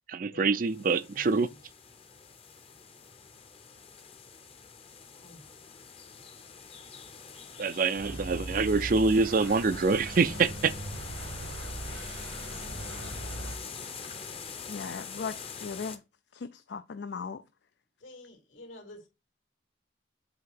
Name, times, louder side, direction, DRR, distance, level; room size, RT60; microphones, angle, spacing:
voice 1, 0.1-1.5 7.6-10.7, right 4 dB, 45° right, 0.4 m, -25 dB
sound 1, 0.6-16.0, left 6 dB, 30° left, 0.8 m, -44 dB
voice 2, 1.1-1.6 5.2-5.4 11.4-11.6 18.0-19.1, left 1 dB, 80° left, 3.0 m, -50 dB
sound 2, 8.0-13.6, right 1 dB, 65° right, 1.1 m, -39 dB
voice 3, 14.7-16.0 16.3-17.4, left 5 dB, 60° left, 0.4 m, -38 dB
7.8 x 2.8 x 5.7 m
head